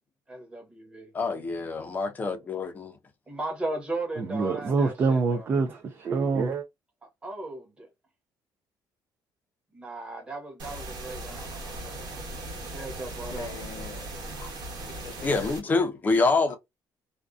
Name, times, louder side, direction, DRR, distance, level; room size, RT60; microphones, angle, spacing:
voice 1, 0.3-1.1 3.3-5.5 7.2-7.9 9.7-12.2 12.7-13.6, right 2 dB, 15° right, 0.9 m, -37 dB
voice 2, 1.1-3.0 15.2-16.5, left 3 dB, 20° left, 0.5 m, -26 dB
voice 3, 4.3-6.6, right 4 dB, 30° right, 0.3 m, -25 dB
sound 1, 10.6-15.6, right 2 dB, 65° right, 1.1 m, -38 dB
voice 4, 13.3-14.5 14.9-15.9 16.5-16.6, left 6 dB, 55° left, 0.8 m, -44 dB
2.5 x 2.2 x 2.3 m
cardioid pair, 160°, 8 cm